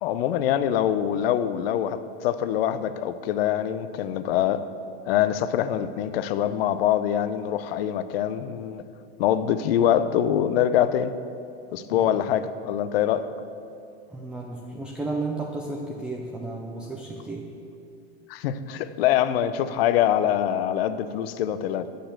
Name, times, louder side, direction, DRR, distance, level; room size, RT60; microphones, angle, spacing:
voice 1, 0.0-4.7 5.1-8.8 9.2-11.1 11.7-13.3 18.3-21.9, left 10 dB, 65° left, 13 dB, 0.6 m, -24 dB
voice 2, 14.1-17.5, right 2 dB, 5° right, 0 dB, 0.4 m, -33 dB
7.9 x 6.6 x 7.6 m, 2.5 s
supercardioid pair, 140°, 32 cm